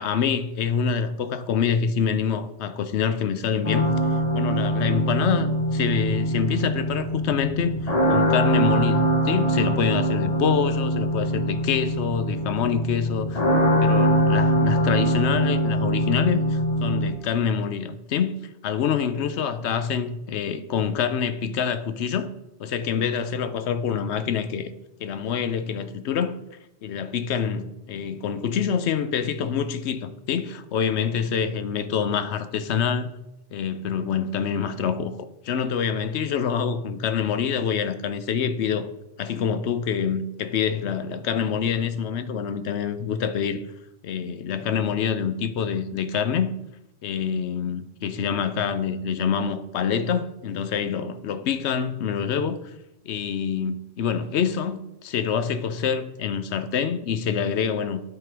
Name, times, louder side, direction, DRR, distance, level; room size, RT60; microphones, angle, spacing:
voice 1, 0.0-3.9 4.3-13.4 13.8-18.3 18.6-22.3 22.6-24.7 25.0-26.4 26.8-33.1 33.5-35.2 35.4-38.9 39.2-43.6 44.0-46.5 47.0-52.7 53.1-58.0, left 7 dB, 70° left, 0.9 m, -26 dB
sound 1, 3.6-17.1, equal, 35° left, 1.1 m, -23 dB
11.0 x 3.9 x 4.5 m
omnidirectional pair, 1.2 m